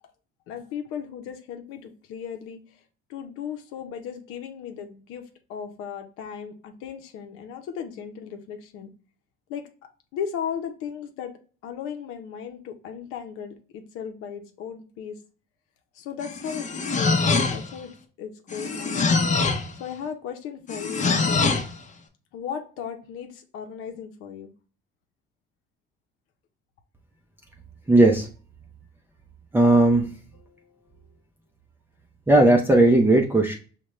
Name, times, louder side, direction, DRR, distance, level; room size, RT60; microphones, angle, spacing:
voice 1, 0.5-2.8 3.1-8.9 9.5-9.7 10.1-15.2 15.9-17.9 18.2-19.3 19.8-21.4 22.3-24.5 30.3-31.0, left 7 dB, 85° left, 5 dB, 0.6 m, -36 dB
sound 1, 16.2-17.8 18.5-19.7 20.7-21.7, left 4 dB, 35° left, 0.7 m, -24 dB
voice 2, 27.9-28.3 29.5-30.1 32.3-33.6, right 2 dB, 10° right, 2 dB, 0.5 m, -17 dB
5.1 x 2.1 x 3.0 m, 0.39 s
cardioid pair, 100°, 21 cm